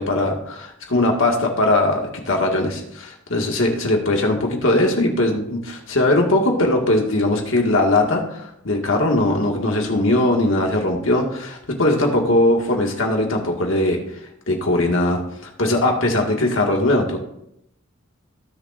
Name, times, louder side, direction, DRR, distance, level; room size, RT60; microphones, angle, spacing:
voice 1, 0.0-14.0 14.5-15.2 15.6-17.2, left 1 dB, 70° left, 0 dB, 1.9 m, -20 dB
19.5 x 6.9 x 2.6 m, 0.78 s
head